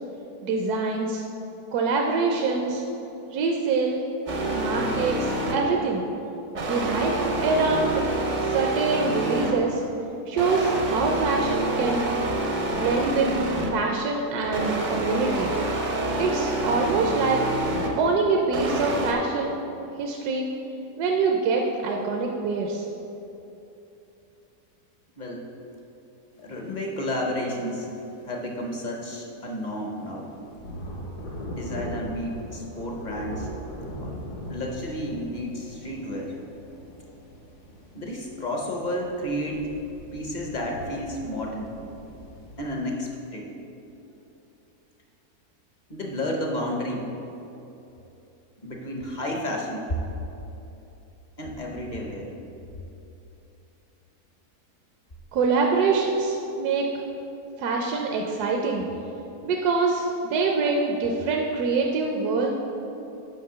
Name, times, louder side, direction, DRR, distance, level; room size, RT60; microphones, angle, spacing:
voice 1, 0.4-1.2 1.7-2.8 3.3-4.0 4.6-6.0 6.7-7.1 7.4-8.0 8.5-9.8 10.3-12.1 12.8-13.3 13.7-15.6 16.2-17.4 18.0-19.6 20.0-20.5 21.0-22.8 55.3-56.9 57.6-58.8 59.4-62.5, right 4 dB, 75° right, 1 dB, 1.1 m, -25 dB
sound 1, 4.3-5.8 6.5-9.8 10.4-13.9 14.4-18.1 18.5-19.1, right 1 dB, 50° right, 0.6 m, -27 dB
voice 2, 25.2-25.5 26.4-27.9 28.3-30.3 31.5-33.5 34.0-34.2 34.5-36.4 37.9-39.7 40.1-41.7 42.6-43.5 45.9-47.1 48.6-50.0 51.4-52.3, equal, 40° left, 0 dB, 0.7 m, -31 dB
sound 2, 29.4-29.7 30.1-42.8, equal, 80° left, 1.9 m, -40 dB
6.6 x 5.0 x 6.7 m, 2.9 s
omnidirectional pair, 1.7 m